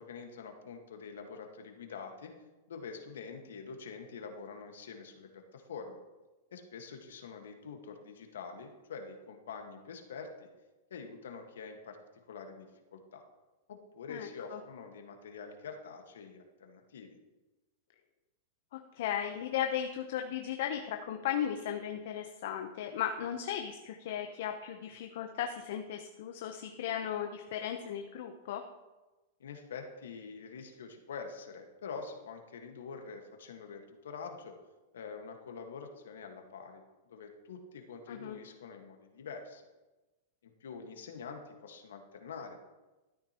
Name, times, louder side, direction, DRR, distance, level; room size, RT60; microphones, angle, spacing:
voice 1, 0.0-2.3 2.7-6.0 6.5-10.5 10.9-12.0 12.3-13.2 13.7-17.2 29.4-34.5 34.9-39.6 40.4-42.6, left 5 dB, 85° left, 4 dB, 1.5 m, -46 dB
voice 2, 14.1-14.6 18.7-28.6 38.1-38.4, left 9 dB, 65° left, 4 dB, 0.8 m, -36 dB
12.5 x 9.6 x 3.0 m, 1.1 s
hypercardioid pair, 135°, 0 cm